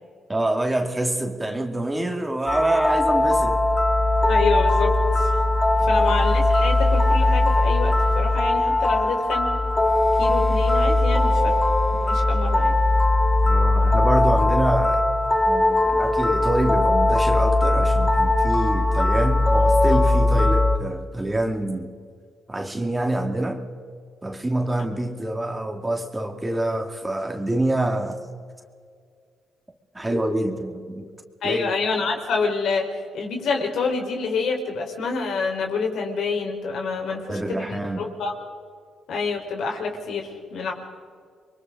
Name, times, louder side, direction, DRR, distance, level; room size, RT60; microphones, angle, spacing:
voice 1, 0.3-3.7 5.9-6.2 13.4-15.0 15.4-21.9 22.5-23.6 24.2-28.2 29.9-31.1 31.4-31.8 37.1-38.1, right 1 dB, 15° right, 4 dB, 2.3 m, -26 dB
sound 1, 2.5-20.8, left 2 dB, 15° left, 2.1 m, -19 dB
voice 2, 4.3-5.3 5.8-9.5 10.2-11.6 12.0-12.8 31.4-32.9 33.1-38.3 39.1-40.7, left 4 dB, 70° left, 2 dB, 4.1 m, -27 dB
29.0 x 23.0 x 3.8 m, 2.1 s
cardioid pair, 90°, 0 cm